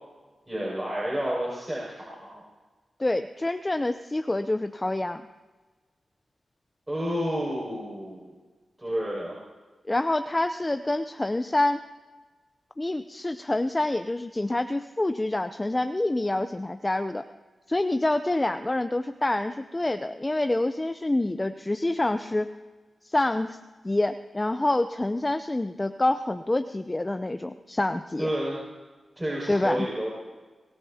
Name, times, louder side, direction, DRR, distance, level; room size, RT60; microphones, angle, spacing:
voice 1, 0.5-2.4 6.9-8.3 8.8-9.4 28.2-28.6 29.2-30.1, equal, 20° right, -5 dB, 6.4 m, -30 dB
voice 2, 3.0-5.2 9.9-11.8 12.8-17.2 17.7-22.5 23.0-23.6 23.8-28.3 29.5-29.9, left 2 dB, 25° left, 9 dB, 0.7 m, -27 dB
23.5 x 18.0 x 2.9 m, 1.3 s
cardioid pair, 50°, 0 cm